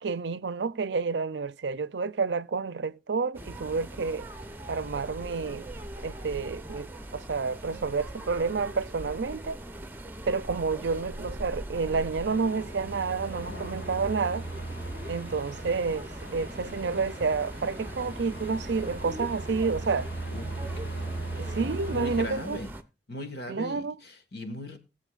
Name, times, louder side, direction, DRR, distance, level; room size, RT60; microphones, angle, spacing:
voice 1, 0.0-4.3 4.7-5.7 6.0-9.6 10.3-14.5 15.1-20.1 21.4-22.6 23.5-24.0, right 4 dB, 70° right, 0.5 m, -30 dB
sound 1, 3.3-22.8, right 1 dB, 10° right, 0.9 m, -41 dB
sound 2, 12.1-22.3, right 2 dB, 80° left, 4.4 m, -39 dB
voice 2, 20.3-21.0 21.3-22.7 23.1-24.8, left 1 dB, 60° left, 1.9 m, -39 dB
20.5 x 7.6 x 2.5 m
head